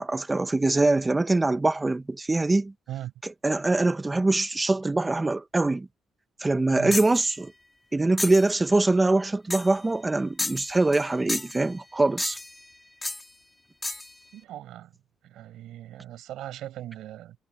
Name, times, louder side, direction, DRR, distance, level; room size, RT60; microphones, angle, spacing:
voice 1, 0.0-2.7 3.2-5.9 6.4-7.5 7.9-12.4, right 2 dB, 20° right, 1.1 m, -23 dB
sound 1, 6.9-7.2 8.2-8.5 9.5-9.8 10.4-11.0 11.3-11.6 12.2-12.6 13.0-13.2 13.8-14.1, left 2 dB, 15° left, 2.7 m, -31 dB
voice 2, 14.3-14.9 15.2-17.4, right 13 dB, 85° right, 6.5 m, -39 dB
cardioid pair, 90°, 0 cm